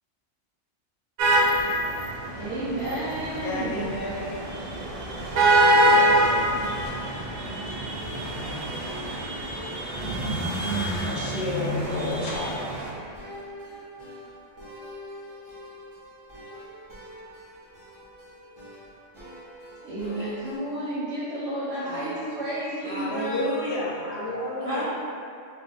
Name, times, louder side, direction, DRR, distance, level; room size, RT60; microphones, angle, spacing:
sound 1, 1.2-12.9, right 1 dB, 65° right, 0.7 m, -25 dB
voice 1, 2.3-3.9 19.8-23.5 24.6-24.8, right 1 dB, 90° right, -9 dB, 1.0 m, -31 dB
voice 2, 3.4-4.4 10.9-12.5 20.0-20.5 21.9-22.0 22.8-24.8, left 2 dB, 65° left, -4 dB, 0.8 m, -31 dB
voice 3, 5.4-6.4 24.3-24.8, left 2 dB, 20° left, -11 dB, 0.7 m, -35 dB
Positive tune - two guitars, 7.9-20.6, equal, 25° right, 0.4 m, -45 dB
2.5 x 2.1 x 3.8 m, 2.3 s
omnidirectional pair, 1.2 m